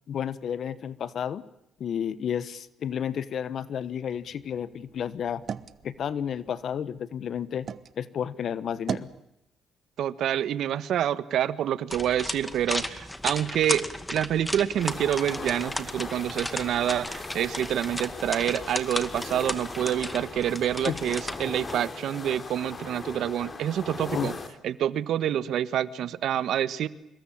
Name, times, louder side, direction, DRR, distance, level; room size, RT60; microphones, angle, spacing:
voice 1, 0.1-1.4 1.8-5.4 5.8-7.7 8.0-9.1 20.9-21.0 24.1-24.3, left 8 dB, 60° left, 16 dB, 1.2 m, -31 dB
sound 1, 4.1-7.9 8.4-9.2, right 7 dB, 55° right, 1.2 m, -39 dB
voice 2, 10.0-24.3 24.6-26.9, right 10 dB, 75° right, 15 dB, 1.3 m, -27 dB
receipt paper crumple, 11.9-21.8, left 1 dB, 10° left, 2.2 m, -35 dB
sound 2, 14.7-24.5, left 3 dB, 35° left, 3.4 m, -39 dB
26.5 x 22.0 x 8.8 m, 0.84 s
cardioid pair, 90°, 0 cm